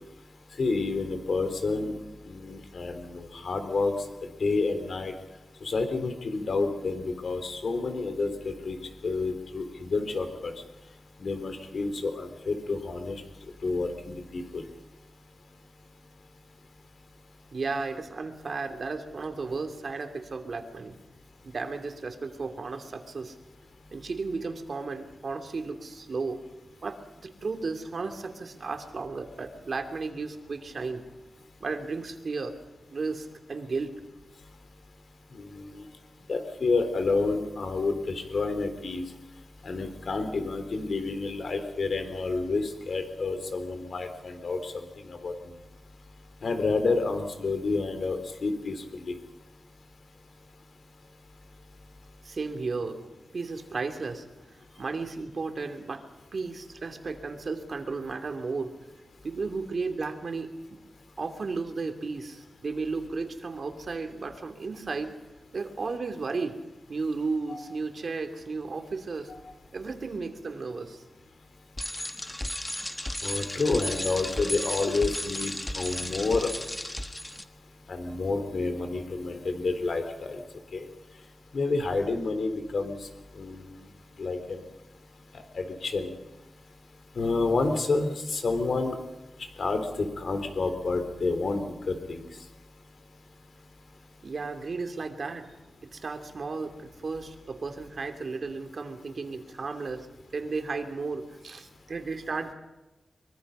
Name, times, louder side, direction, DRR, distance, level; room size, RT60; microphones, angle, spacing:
voice 1, 0.6-1.9 2.3-3.9 4.4-5.1 5.6-8.8 9.0-10.5 11.2-13.2 13.6-14.6 35.4-35.8 36.3-39.0 39.6-44.7 45.1-45.3 46.4-49.2 67.5-67.7 69.3-69.4 73.2-76.5 77.9-80.4 80.7-80.9 81.5-83.0 83.4-83.7 84.2-84.6 85.6-86.1 87.2-88.9 89.6-92.2, left 3 dB, 60° left, 7 dB, 3.8 m, -29 dB
voice 2, 17.5-21.0 21.4-23.4 23.9-26.4 26.8-31.0 31.6-32.6 32.9-34.0 52.2-53.0 53.3-54.2 54.8-56.1 56.3-58.7 59.2-60.8 61.2-65.2 65.5-66.6 66.9-69.3 69.7-71.0 94.2-95.5 95.9-100.1 100.3-102.5, right 4 dB, 55° right, 6 dB, 2.9 m, -34 dB
Bicycle, 71.8-77.4, left 1 dB, 15° left, 1.4 m, -34 dB
24.0 x 23.0 x 5.6 m, 1.0 s
wide cardioid pair, 95°, 0 cm